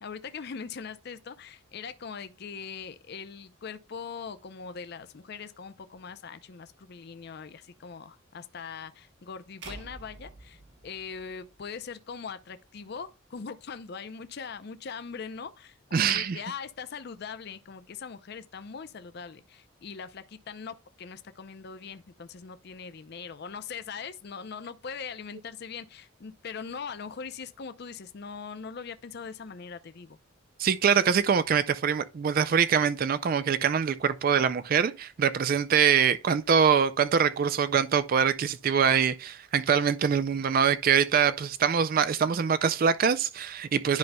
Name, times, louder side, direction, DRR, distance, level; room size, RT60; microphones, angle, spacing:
voice 1, 0.0-30.2, left 6 dB, 50° left, 0.5 m, -41 dB
sound 1, 9.6-11.9, right 3 dB, 60° right, 1.5 m, -47 dB
voice 2, 15.9-16.4 30.6-44.0, right 7 dB, 45° right, 0.3 m, -24 dB
10.5 x 5.3 x 2.2 m
head